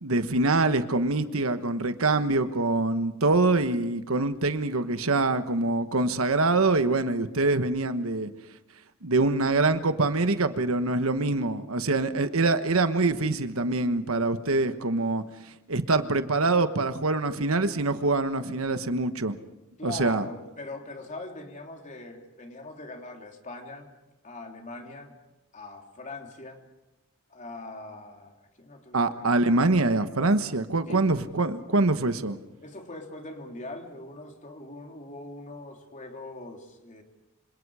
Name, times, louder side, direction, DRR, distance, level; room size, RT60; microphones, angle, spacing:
voice 1, 0.0-8.3 9.0-15.2 15.7-19.4 19.8-20.2 28.9-32.4, right 2 dB, 70° right, 10 dB, 1.2 m, -24 dB
voice 2, 19.8-23.9 24.2-25.1 25.5-26.6 27.3-29.3 30.8-31.0 32.6-37.0, left 2 dB, 35° left, 3 dB, 3.3 m, -41 dB
27.0 x 26.5 x 4.9 m, 0.96 s
head